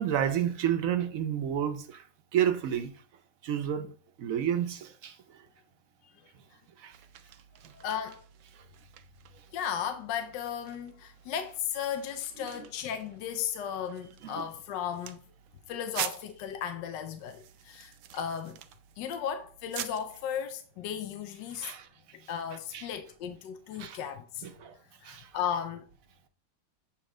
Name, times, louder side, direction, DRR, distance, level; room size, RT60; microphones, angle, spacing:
voice 1, 0.0-2.0 2.3-2.9 3.4-3.9 4.2-5.2 6.8-6.9 14.2-14.5 21.5-21.9 22.7-22.9 23.7-24.0 24.4-24.8 25.0-25.3, right 10 dB, 60° right, 0.9 m, -30 dB
sound 1, 6.9-20.3, right 10 dB, 85° right, 1.4 m, -45 dB
voice 2, 7.7-8.2 9.5-15.2 15.7-18.6 19.0-21.7 22.3-24.4 25.0-25.9, left 8 dB, 75° left, 1.2 m, -35 dB
8.5 x 3.0 x 4.9 m
omnidirectional pair, 2.0 m